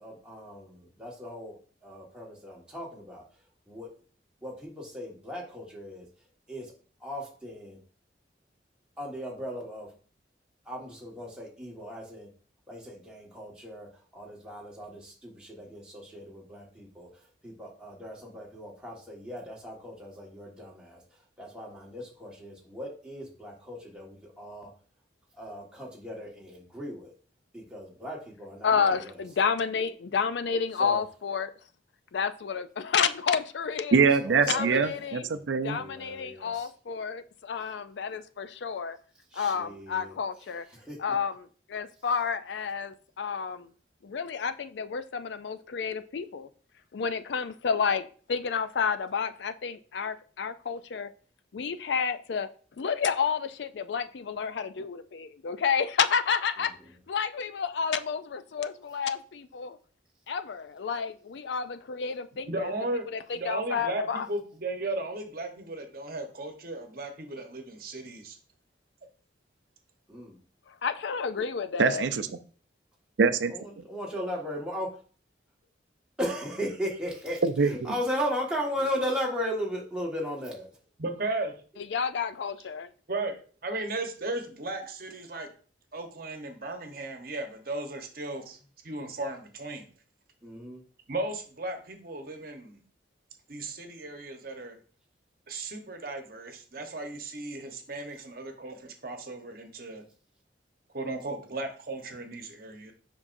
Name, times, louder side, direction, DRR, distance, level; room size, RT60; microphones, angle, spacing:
voice 1, 0.0-1.5 1.8-3.2 3.7-3.9 4.4-6.0 6.5-6.6 7.0-7.8 9.0-9.9 10.7-12.3 12.7-13.9 14.1-17.1 17.4-21.0 21.4-24.7 25.4-27.1 27.5-28.9 30.8-31.0 34.3-34.7 35.7-36.5 39.3-40.1 40.9-41.0 70.1-70.3 73.5-74.9 76.2-80.7 90.4-90.8, equal, 5° right, 1.5 m, -36 dB
voice 2, 28.6-31.5 32.1-34.0 34.5-35.3 35.6-39.0 39.3-40.7 41.0-43.7 44.0-46.5 46.9-51.1 51.5-52.5 52.8-56.7 57.1-59.8 60.3-62.7 63.1-64.3 70.7-72.1 81.8-82.9, left 6 dB, 75° left, 0.4 m, -30 dB
voice 3, 33.9-35.8 71.8-72.3 73.2-73.5 77.4-77.9, right 5 dB, 80° right, 0.4 m, -24 dB
voice 4, 62.5-63.0 63.3-68.4 81.0-81.5 83.1-83.3 83.6-85.5 85.9-88.6 88.8-89.9 91.1-92.8 93.5-94.8 95.5-100.0 100.9-102.9, right 2 dB, 50° right, 1.0 m, -35 dB
7.2 x 5.3 x 2.6 m
head